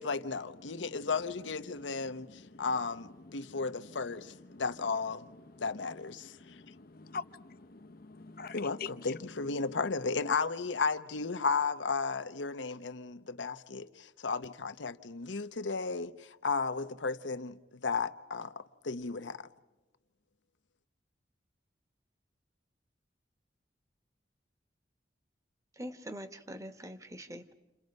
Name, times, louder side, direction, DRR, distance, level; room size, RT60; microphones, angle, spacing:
voice 1, 0.0-5.3 5.6-6.6 8.5-18.5 18.8-19.5, left 4 dB, 90° left, 0.9 m, -34 dB
voice 2, 6.4-8.9, left 5 dB, 55° left, 0.8 m, -44 dB
voice 3, 25.8-27.5, equal, 20° right, 1.2 m, -43 dB
29.5 x 27.5 x 5.4 m
head